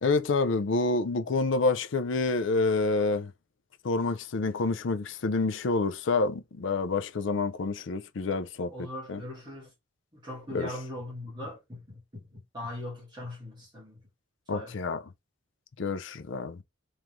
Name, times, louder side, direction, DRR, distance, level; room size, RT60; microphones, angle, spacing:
voice 1, 0.0-3.3 3.8-8.7 9.1-9.2 10.5-10.7 14.5-15.0 15.8-16.6, left 3 dB, 65° left, 0.5 m, -28 dB
voice 2, 8.7-9.7 10.2-14.0 14.5-14.8, left 1 dB, 20° right, 1.8 m, -40 dB
3.6 x 3.2 x 3.0 m
head